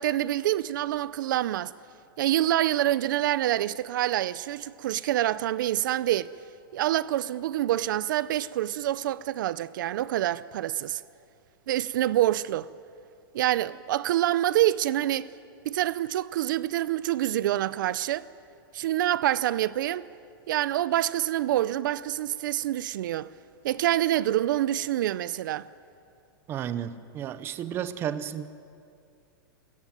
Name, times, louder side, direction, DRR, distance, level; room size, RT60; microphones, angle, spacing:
voice 1, 0.0-1.7 2.2-6.3 6.7-11.0 11.7-12.7 13.3-15.3 15.6-18.3 18.7-20.1 20.5-23.3 23.6-25.7, right 13 dB, 60° right, 0.5 m, -26 dB
voice 2, 26.5-28.5, right 9 dB, 20° right, 0.7 m, -32 dB
28.0 x 15.0 x 9.2 m
supercardioid pair, 165°, 12 cm